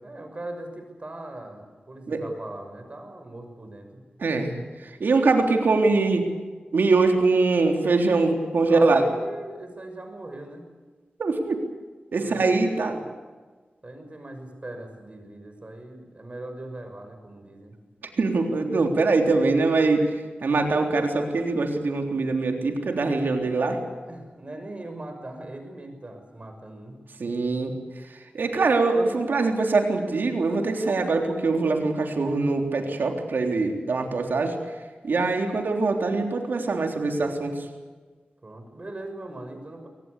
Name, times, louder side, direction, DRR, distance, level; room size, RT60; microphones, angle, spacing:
voice 1, 0.0-4.0 8.7-10.6 12.2-13.1 13.8-17.8 23.4-27.0 38.4-39.9, right 1 dB, 40° right, 5 dB, 6.2 m, -40 dB
voice 2, 4.2-6.3 6.7-9.0 11.2-11.6 12.1-13.0 18.2-23.7 27.2-27.7 28.1-34.6 35.0-37.7, right 3 dB, 85° right, 3 dB, 3.6 m, -23 dB
25.0 x 18.5 x 8.4 m, 1.3 s
wide cardioid pair, 65°, 3 cm